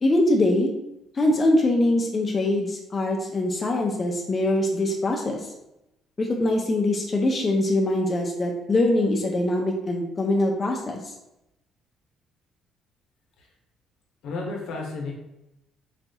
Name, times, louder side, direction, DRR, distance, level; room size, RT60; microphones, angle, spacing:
voice 1, 0.0-0.7 1.1-5.4 6.2-11.1, left 1 dB, 25° left, 0 dB, 0.4 m, -23 dB
voice 2, 14.2-15.1, left 3 dB, 75° left, 0 dB, 0.8 m, -32 dB
4.1 x 2.2 x 2.7 m, 0.88 s
cardioid pair, 155°, 0 cm